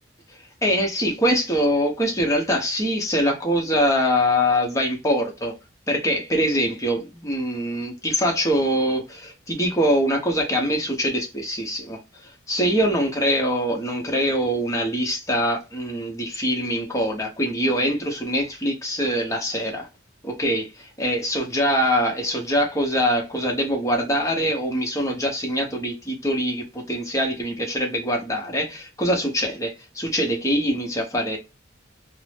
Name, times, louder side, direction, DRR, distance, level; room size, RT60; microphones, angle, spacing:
voice 1, 0.6-5.5 5.9-19.9 20.2-31.4, equal, 15° left, 0.7 m, -23 dB
2.6 x 2.0 x 3.2 m
head